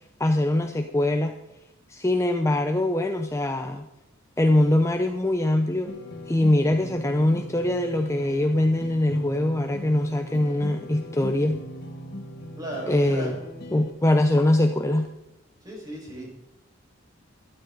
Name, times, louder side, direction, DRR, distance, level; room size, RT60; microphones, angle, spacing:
voice 1, 0.2-1.3 1.9-3.9 4.4-5.9 6.3-11.6 12.9-13.3 13.7-15.1, left 1 dB, 15° left, 5 dB, 0.6 m, -22 dB
sound 1, 5.9-13.9, left 1 dB, 55° left, 1.6 m, -40 dB
voice 2, 12.6-13.4 15.6-16.3, right 1 dB, 20° right, -2 dB, 5.0 m, -35 dB
12.5 x 12.5 x 3.9 m, 0.92 s
head